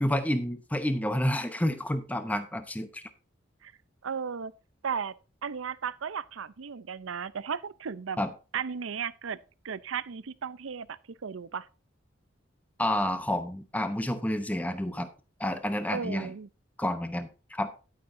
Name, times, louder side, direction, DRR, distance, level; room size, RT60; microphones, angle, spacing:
voice 1, 0.0-3.0 8.2-8.3 12.8-15.1 15.4-16.3 16.8-17.7, left 1 dB, 10° left, 0.7 m, -29 dB
voice 2, 4.0-4.5 4.8-5.1 5.4-8.2 8.5-9.4 9.6-11.7 15.9-16.5, right 6 dB, 85° right, 0.6 m, -35 dB
11.0 x 9.4 x 2.6 m
head